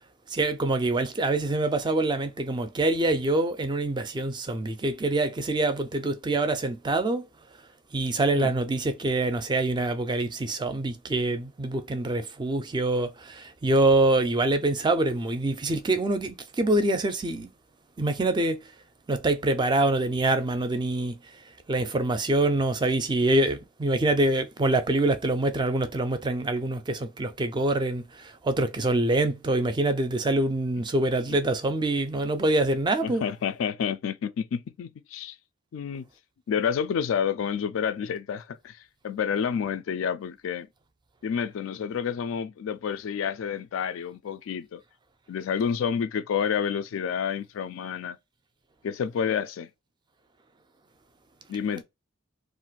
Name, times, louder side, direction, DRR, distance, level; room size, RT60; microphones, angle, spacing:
voice 1, 0.3-7.2 7.9-17.5 18.0-18.6 19.1-21.1 21.7-28.0 28.4-33.3, right 2 dB, 20° right, 0.4 m, -25 dB
voice 2, 33.0-35.4 35.7-36.0 36.5-38.8 39.0-40.7 41.2-44.8 45.3-48.2 48.8-49.7 51.5-51.8, left 7 dB, 75° left, 0.3 m, -29 dB
2.5 x 2.1 x 3.9 m
head